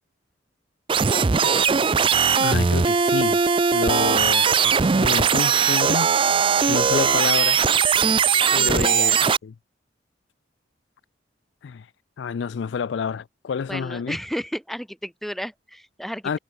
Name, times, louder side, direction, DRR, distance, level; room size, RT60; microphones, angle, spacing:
sound 1, 0.9-9.4, right 6 dB, 25° right, 0.4 m, -19 dB
voice 1, 2.4-3.4 3.7-6.1 6.6-7.6 8.5-9.2 9.4-9.5 11.6-11.9 12.2-14.2 16.2-16.4, left 6 dB, 75° left, 0.4 m, -28 dB
voice 2, 8.6-9.2 13.7-16.4, equal, ahead, 2.2 m, -33 dB
head